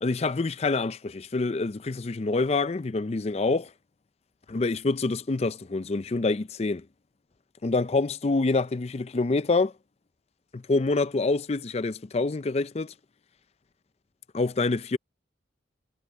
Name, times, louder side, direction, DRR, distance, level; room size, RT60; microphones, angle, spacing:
voice 1, 0.0-3.7 4.5-6.8 7.6-9.7 10.5-12.9 14.3-15.0, left 3 dB, 35° left, 0.4 m, -26 dB
head